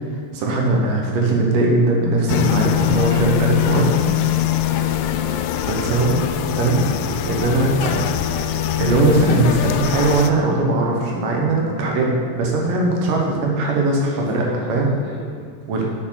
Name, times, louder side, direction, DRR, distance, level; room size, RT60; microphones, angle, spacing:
voice 1, 0.3-4.1 5.6-6.2 6.6-6.9 7.2-14.4 14.7-14.9 15.7-15.8, right 2 dB, 65° right, -1 dB, 2.5 m, -20 dB
sound 1, 2.3-10.3, left 12 dB, 90° left, 2.1 m, -22 dB
sound 2, 2.7-12.2, equal, 70° left, 1.9 m, -35 dB
voice 2, 4.9-5.2 13.6-13.8 14.0-15.8, right 1 dB, 50° right, -5 dB, 2.2 m, -38 dB
8.7 x 6.5 x 5.8 m, 2.1 s
omnidirectional pair, 4.7 m